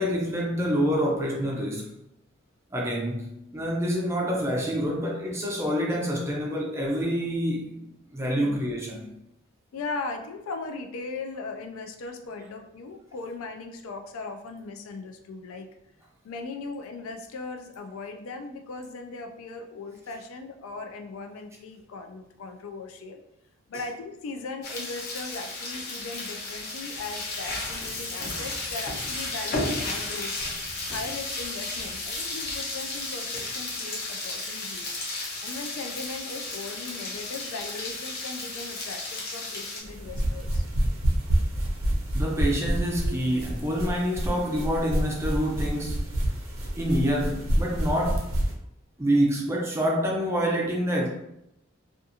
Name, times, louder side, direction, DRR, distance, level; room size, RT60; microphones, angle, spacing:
voice 1, 0.0-1.9 2.7-7.8 8.1-9.1 42.1-46.0 46.7-48.3 49.0-51.1, equal, 15° right, -2 dB, 0.4 m, -27 dB
voice 2, 9.7-15.7 16.2-23.2 23.7-30.3 30.9-34.9 35.4-40.7, left 3 dB, 80° left, 6 dB, 0.3 m, -38 dB
sound 1, 24.6-39.8, left 2 dB, 50° left, 0.7 m, -33 dB
sound 2, 39.8-48.5, right 1 dB, 75° right, 0.6 m, -28 dB
2.5 x 2.4 x 2.7 m, 0.81 s
head